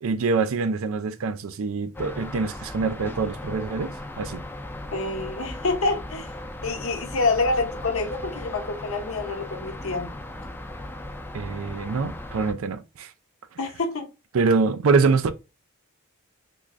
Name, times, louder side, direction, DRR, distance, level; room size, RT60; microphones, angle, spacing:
voice 1, 0.0-4.4 11.3-13.1 14.3-15.3, right 4 dB, 70° right, 0.4 m, -25 dB
sound 1, 1.9-12.5, left 1 dB, 10° left, 0.4 m, -37 dB
voice 2, 4.9-6.3 6.6-10.1 13.6-14.1, left 3 dB, 70° left, 0.8 m, -27 dB
3.8 x 3.0 x 2.4 m
head